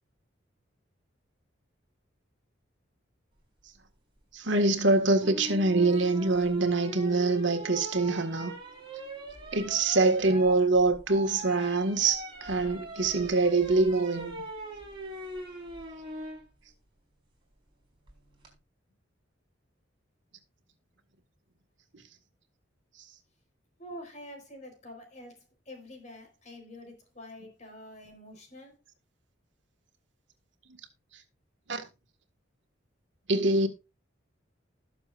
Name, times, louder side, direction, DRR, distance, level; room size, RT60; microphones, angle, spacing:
voice 1, 4.3-8.5 9.5-14.3 31.7-31.8 33.3-33.7, right 3 dB, 70° right, 1.8 m, -24 dB
sound 1, 5.2-16.4 18.1-18.5, right 1 dB, 25° right, 4.5 m, -41 dB
voice 2, 23.8-28.7, left 1 dB, 35° left, 4.2 m, -47 dB
20.0 x 7.0 x 2.5 m
head